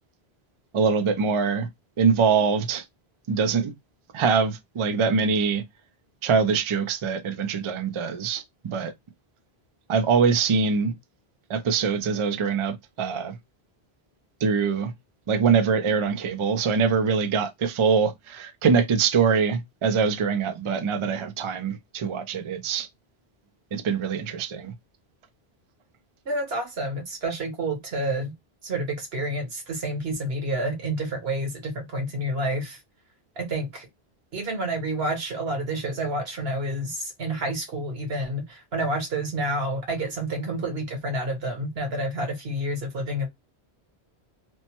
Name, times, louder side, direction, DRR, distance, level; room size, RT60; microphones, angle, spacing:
voice 1, 0.7-1.7 2.0-2.8 3.3-3.7 4.1-5.6 6.2-8.9 9.9-10.9 11.5-13.4 14.4-14.9 15.3-22.9 23.7-24.7, right 5 dB, 55° right, 0.3 m, -23 dB
voice 2, 26.3-28.3 28.6-32.8 33.4-33.9 34.3-43.3, right 1 dB, 70° right, 1.3 m, -29 dB
3.0 x 2.1 x 2.8 m
omnidirectional pair, 1.1 m